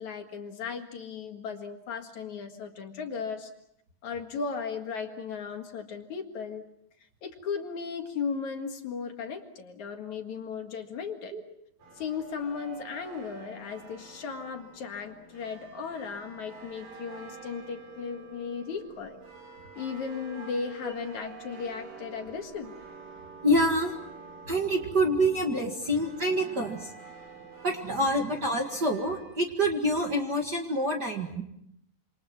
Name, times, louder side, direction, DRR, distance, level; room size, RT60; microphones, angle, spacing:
voice 1, 0.0-3.5 4.0-6.7 7.2-11.3 12.0-19.2 19.8-22.8, left 5 dB, 60° left, 5 dB, 3.0 m, -36 dB
sound 1, 11.8-29.4, right 5 dB, 90° right, 7.0 m, -48 dB
voice 2, 23.4-23.9 24.5-26.9 27.6-31.4, equal, 35° right, 2 dB, 2.1 m, -27 dB
27.5 x 26.5 x 6.1 m, 0.75 s
omnidirectional pair, 4.0 m